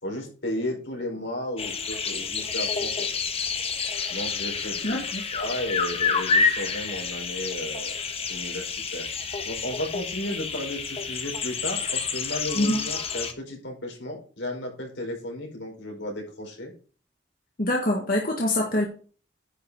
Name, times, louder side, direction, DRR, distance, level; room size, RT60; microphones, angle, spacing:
voice 1, 0.0-3.1 4.1-5.0 5.3-8.0 8.3-9.1 9.4-16.7, left 1 dB, 80° left, 1 dB, 4.5 m, -34 dB
sound 1, 1.6-13.3, left 5 dB, 30° left, 1.2 m, -29 dB
voice 2, 4.8-5.2 12.5-12.8 17.6-18.8, left 1 dB, 50° left, -1 dB, 1.7 m, -24 dB
10.5 x 6.0 x 4.7 m, 0.39 s
head